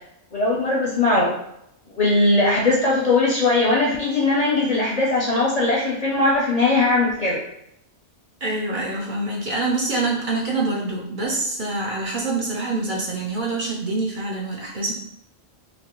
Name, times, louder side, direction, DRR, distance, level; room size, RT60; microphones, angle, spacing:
voice 1, 0.3-1.3 1.9-7.4, left 2 dB, 45° left, -3 dB, 0.6 m, -20 dB
voice 2, 8.4-14.9, right 2 dB, 50° right, -3 dB, 0.9 m, -25 dB
3.2 x 2.8 x 2.9 m, 0.79 s
omnidirectional pair, 1.1 m